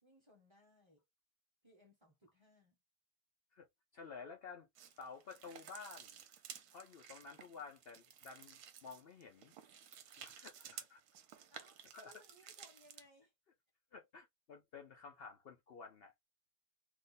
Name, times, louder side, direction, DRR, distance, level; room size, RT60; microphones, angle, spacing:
voice 1, 0.0-1.0 1.6-2.8 11.5-13.3, equal, 25° right, 0.6 m, -66 dB
voice 2, 3.9-4.7 5.0-6.2 6.7-9.5 10.2-11.0 11.5-11.6 11.9-12.1 13.9-16.1, left 5 dB, 85° left, 0.5 m, -52 dB
sound 1, 4.8-13.1, right 8 dB, 70° right, 1.2 m, -55 dB
3.0 x 2.1 x 3.9 m
omnidirectional pair, 1.8 m